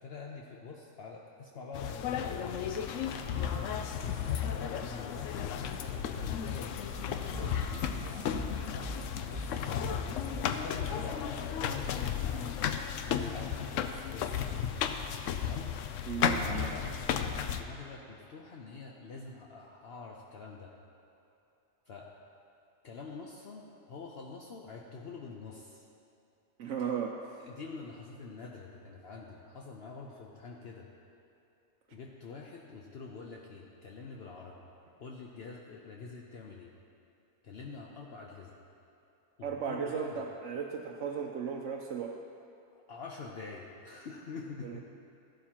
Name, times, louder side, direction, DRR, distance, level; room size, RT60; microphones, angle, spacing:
voice 1, 0.0-2.7 4.0-7.3 7.7-9.0 9.2-9.8 10.2-12.8 13.3-14.4 15.4-15.7 16.3-16.9 17.5-20.7 21.9-22.1 22.8-25.9 26.8-26.9 27.4-30.9 31.9-34.6 35.0-36.7 37.4-38.5 39.4-40.2 42.9-44.8, left 4 dB, 60° left, -1 dB, 1.0 m, -46 dB
sound 1, 1.7-17.6, left 8 dB, 85° left, 0.9 m, -34 dB
sound 2, 2.6-5.8 6.6-10.4, equal, 30° right, 1.6 m, -45 dB
voice 2, 16.1-16.7 26.6-27.4 39.4-42.2 44.6-44.8, right 6 dB, 80° right, 0 dB, 1.0 m, -36 dB
14.5 x 11.5 x 2.9 m, 2.8 s
omnidirectional pair, 1.3 m